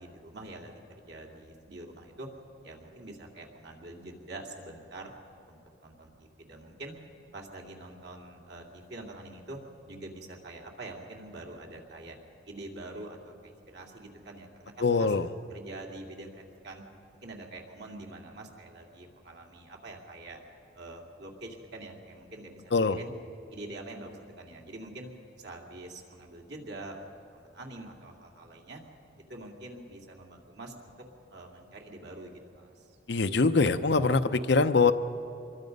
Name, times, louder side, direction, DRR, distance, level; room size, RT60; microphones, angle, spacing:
voice 1, 0.0-2.3 2.6-5.1 5.5-6.9 7.3-9.6 9.9-12.1 12.5-15.1 15.5-16.8 17.2-20.4 20.7-23.1 23.5-25.1 25.4-28.8 29.3-30.9 31.3-32.7, right 2 dB, 60° right, 0 dB, 2.7 m, -45 dB
voice 2, 14.8-15.3 22.7-23.0 33.1-34.9, left 4 dB, 65° left, 10 dB, 0.7 m, -23 dB
25.5 x 21.5 x 5.4 m, 2.7 s
head